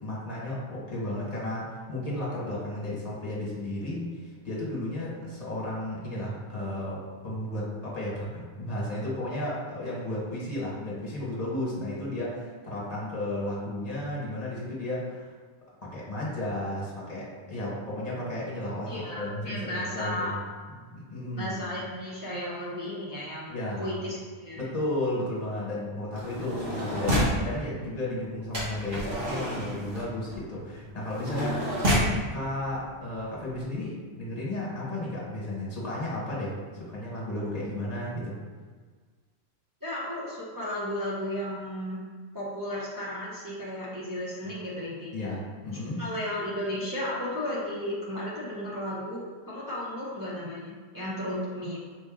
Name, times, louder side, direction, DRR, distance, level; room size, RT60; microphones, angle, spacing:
voice 1, 0.0-15.3 15.8-20.4 20.9-21.6 23.5-24.0 24.6-31.7 32.3-36.5 36.8-38.4 45.1-46.0, left 1 dB, 35° left, -6 dB, 1.5 m, -33 dB
voice 2, 18.9-20.3 21.4-24.6 39.8-42.0 42.3-45.3 46.0-51.8, left 1 dB, 20° right, -8 dB, 0.7 m, -34 dB
sound 1, 26.1-27.4 28.5-32.2 33.0-33.1 33.3-33.6, equal, 55° right, 1.4 m, -29 dB
5.1 x 2.6 x 3.8 m, 1.5 s
omnidirectional pair, 1.2 m